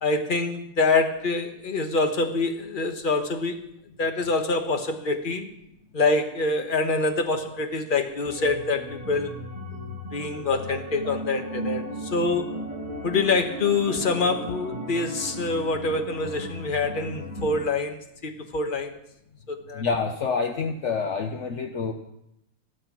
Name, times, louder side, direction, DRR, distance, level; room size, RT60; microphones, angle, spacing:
voice 1, 0.0-3.6 4.0-5.5 5.9-9.3 10.1-12.6 13.0-18.9 19.5-19.8, left 3 dB, 30° left, 6 dB, 1.1 m, -25 dB
sound 1, 8.2-17.6, equal, 15° right, 2.0 m, -36 dB
voice 2, 19.7-21.9, left 5 dB, 55° left, 6 dB, 0.8 m, -27 dB
14.0 x 13.0 x 6.0 m, 0.81 s
omnidirectional pair, 2.3 m